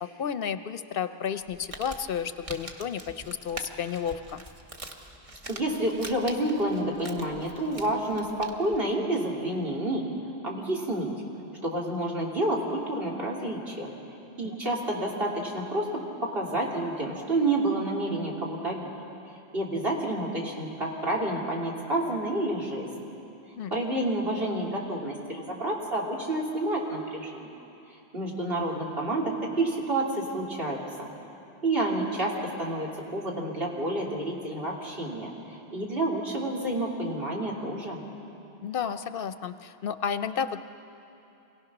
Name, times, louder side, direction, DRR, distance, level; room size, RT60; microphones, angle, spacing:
voice 1, 0.0-4.4 23.6-23.7 38.6-40.6, left 7 dB, 65° left, 11 dB, 0.7 m, -32 dB
Crumpling crinkling, 1.4-8.8, right 2 dB, 35° right, 1.2 m, -44 dB
voice 2, 5.5-10.1 10.4-11.1 11.6-13.9 14.4-18.9 19.2-22.9 23.7-27.5 28.1-31.1 31.6-38.0, right 1 dB, 65° right, -3 dB, 3.1 m, -29 dB
26.0 x 17.5 x 6.0 m, 2.9 s
omnidirectional pair, 1.1 m